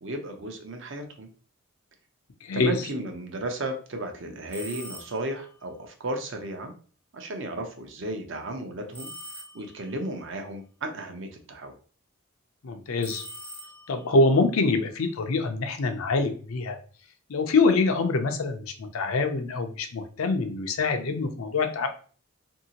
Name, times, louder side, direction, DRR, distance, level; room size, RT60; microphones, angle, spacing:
voice 1, 0.0-1.3 2.5-6.7 7.1-9.1 9.5-11.7, right 1 dB, 60° right, 4 dB, 0.6 m, -34 dB
voice 2, 2.4-2.7 12.6-13.2 13.9-16.8 17.3-21.9, left 3 dB, 80° left, 6 dB, 0.5 m, -25 dB
sound 1, 4.5-5.4 8.9-9.9 13.0-14.1, equal, 10° left, 0.3 m, -42 dB
2.7 x 2.7 x 2.8 m, 0.41 s
head